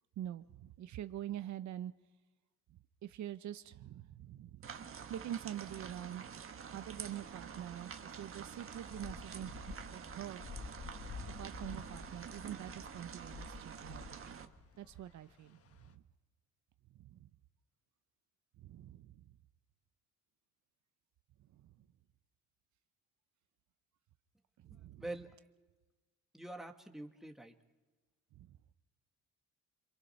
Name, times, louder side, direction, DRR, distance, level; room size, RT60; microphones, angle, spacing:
voice 1, 0.2-1.9 3.0-4.7 5.1-6.3 6.7-10.4 11.2-14.5 14.8-15.6 15.9-16.0 17.0-17.3 18.6-19.3 21.4-21.9 24.6-25.0 28.3-28.6, right 11 dB, 70° right, 12 dB, 0.8 m, -45 dB
sound 1, 4.6-14.5, right 7 dB, 45° right, 1.5 m, -48 dB
sound 2, 4.9-16.0, left 5 dB, 50° left, 1.5 m, -52 dB
voice 2, 24.7-25.5 26.3-27.6, right 2 dB, ahead, 3 dB, 1.9 m, -46 dB
27.0 x 22.5 x 5.8 m, 1.2 s
cardioid pair, 90°, 30 cm